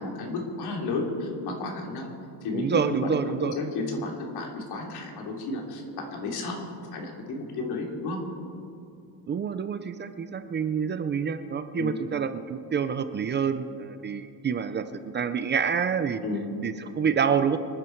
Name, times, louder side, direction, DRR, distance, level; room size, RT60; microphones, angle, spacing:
voice 1, 0.0-2.1 2.4-3.1 3.4-8.2 11.8-11.9 16.2-16.5, left 3 dB, 75° left, 1 dB, 3.0 m, -32 dB
voice 2, 2.5-3.6 9.3-16.2 16.6-17.6, right 7 dB, 30° right, 10 dB, 0.5 m, -27 dB
25.5 x 10.0 x 4.5 m, 2.7 s
cardioid pair, 175°, 39 cm